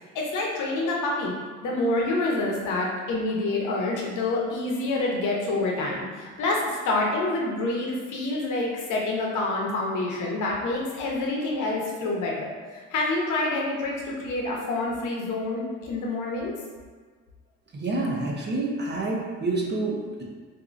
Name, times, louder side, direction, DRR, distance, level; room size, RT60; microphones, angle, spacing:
voice 1, 0.1-1.3 1.6-16.5, left 2 dB, 80° left, -2 dB, 0.8 m, -27 dB
voice 2, 17.7-20.2, right 2 dB, 35° right, -2 dB, 0.7 m, -28 dB
3.7 x 2.7 x 2.5 m, 1.5 s
cardioid pair, 90°, 30 cm